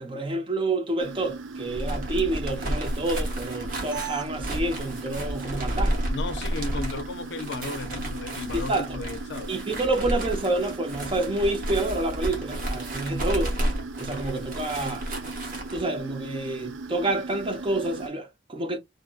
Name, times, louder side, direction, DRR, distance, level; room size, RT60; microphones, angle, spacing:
voice 1, 0.0-5.9 8.5-8.9 9.5-13.5 14.0-15.1 15.7-18.8, right 2 dB, 25° right, 0.5 m, -28 dB
sound 1, 1.0-18.1, right 3 dB, 80° right, 0.5 m, -38 dB
sound 2, 1.6-15.8, right 1 dB, 45° right, 1.0 m, -31 dB
voice 2, 6.1-9.5, left 3 dB, 60° left, 0.4 m, -35 dB
2.6 x 2.6 x 2.3 m
head